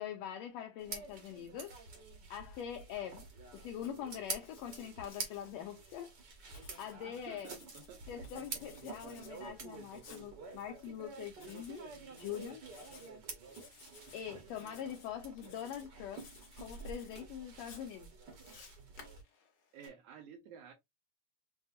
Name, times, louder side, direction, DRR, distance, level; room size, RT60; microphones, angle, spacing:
voice 1, 0.0-1.8 2.3-3.2 3.5-6.1 6.8-7.5 8.1-11.8 12.2-12.6 14.1-16.3 16.6-18.1, left 9 dB, 80° left, 1.7 m, -43 dB
sound 1, 0.8-19.2, right 4 dB, 55° right, 1.2 m, -48 dB
Writing, 3.8-6.0 6.4-7.9 8.2-9.3 9.9-10.3 11.3-11.8 12.1-13.1 13.5-14.2 14.5-15.1 15.4-15.8 16.1-17.2 17.6-19.9, left 6 dB, 55° left, 1.3 m, -58 dB
voice 2, 7.0-8.2 19.7-20.7, right 7 dB, 85° right, 2.4 m, -53 dB
6.1 x 2.5 x 2.5 m
omnidirectional pair, 3.3 m